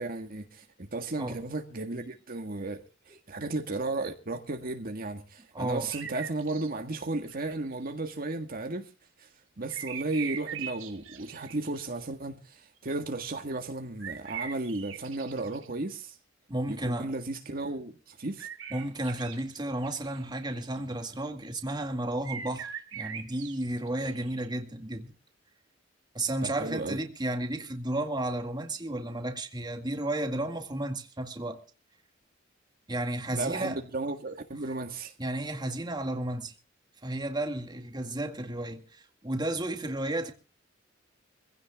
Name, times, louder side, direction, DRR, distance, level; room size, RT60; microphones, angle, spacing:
voice 1, 0.0-8.9 9.2-9.3 9.6-16.2 16.7-18.5 26.4-27.0 33.3-35.1, right 2 dB, 50° right, 1.6 m, -34 dB
voice 2, 5.5-5.9 16.5-17.1 18.7-25.1 26.1-31.6 32.9-33.8 35.2-36.5 37.0-40.3, right 1 dB, 20° right, 2.1 m, -33 dB
sound 1, 5.9-6.7 7.3-7.9 9.7-11.8 12.9-13.0 14.0-15.7 18.4-19.6 19.8-21.0 22.2-24.5, right 8 dB, 90° right, 2.7 m, -41 dB
25.0 x 16.0 x 2.3 m
head